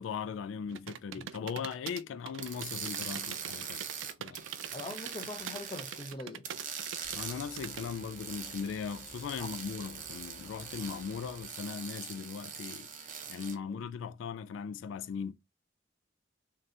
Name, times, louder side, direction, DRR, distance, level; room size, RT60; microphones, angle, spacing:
voice 1, 0.0-3.8 4.2-4.5 7.1-15.3, left 6 dB, 80° left, 0.3 m, -39 dB
sound 1, 0.7-7.8, right 9 dB, 85° right, 0.3 m, -44 dB
sound 2, 2.4-6.1 6.4-13.5, right 7 dB, 45° right, 0.6 m, -42 dB
voice 2, 4.7-6.4 9.4-9.5, left 2 dB, 25° left, 0.5 m, -42 dB
sound 3, 7.0-11.4, equal, ahead, 0.9 m, -57 dB
3.3 x 2.8 x 3.6 m
head